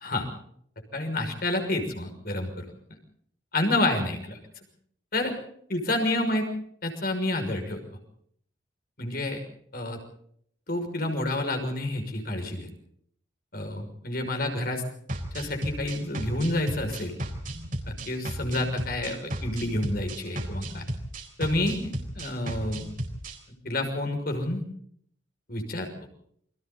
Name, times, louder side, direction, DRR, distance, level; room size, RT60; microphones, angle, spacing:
voice 1, 0.9-2.6 3.5-4.4 5.1-5.3 5.7-6.5 6.8-7.8 9.0-9.4 9.7-10.0 10.7-12.7 13.5-14.8 15.3-17.2 17.9-20.8 21.4-22.9 23.6-24.6 25.5-25.9, left 1 dB, 55° left, 5 dB, 6.0 m, -29 dB
sound 1, 15.1-23.4, right 1 dB, 45° right, 4.0 m, -34 dB
29.0 x 24.0 x 4.1 m, 0.66 s
head